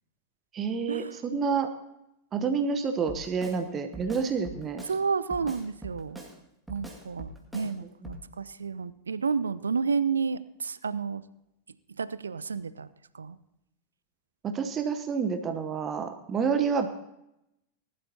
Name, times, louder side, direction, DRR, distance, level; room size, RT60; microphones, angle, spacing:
voice 1, 0.5-1.7 2.3-4.8 8.0-8.2 14.4-16.9, right 5 dB, 25° right, 7 dB, 0.9 m, -29 dB
Drum kit, 3.1-3.6 3.9-5.0 5.3-6.4 6.7-7.7 8.0-8.2, right 2 dB, 5° right, 2.1 m, -42 dB
voice 2, 4.9-6.2 6.7-11.2 12.0-12.9 13.1-13.4, right 5 dB, 75° right, 16 dB, 0.5 m, -31 dB
19.5 x 12.0 x 2.8 m, 0.85 s
figure-of-eight pair, 90°, 0 cm